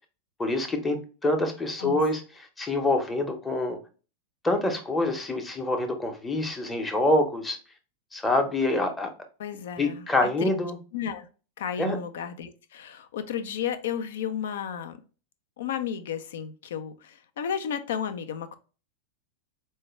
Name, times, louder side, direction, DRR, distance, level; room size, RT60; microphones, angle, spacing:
voice 1, 0.4-2.2 2.6-3.8 4.4-7.6 8.1-9.1 9.8-10.8 11.8-12.0, left 2 dB, 10° left, 0.8 m, -26 dB
voice 2, 9.4-10.5 10.9-11.3 11.6-15.0 15.6-18.6, left 8 dB, 60° left, 0.4 m, -33 dB
4.5 x 2.2 x 3.1 m
figure-of-eight pair, 90°, 0 cm